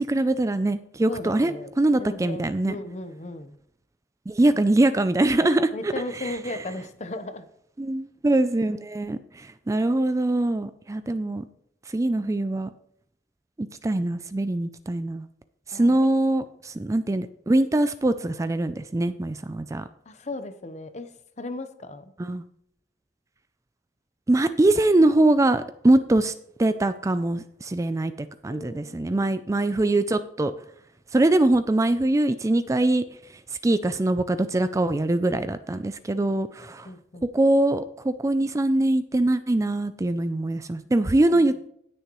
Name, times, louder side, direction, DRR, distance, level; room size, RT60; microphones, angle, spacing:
voice 1, 0.0-2.8 4.3-6.6 7.8-11.4 11.9-12.7 13.6-15.3 15.7-19.9 22.2-22.4 24.3-26.3 26.6-30.6 31.1-33.0 33.3-36.9 37.3-41.5, right 2 dB, 20° right, 12 dB, 0.4 m, -23 dB
voice 2, 1.1-1.7 2.0-3.5 5.7-7.5 15.7-16.1 20.1-21.1 21.4-22.1 28.5-29.3 36.9-37.2 41.3-41.4, left 2 dB, 40° left, 10 dB, 0.9 m, -36 dB
17.5 x 6.6 x 3.1 m, 0.72 s
head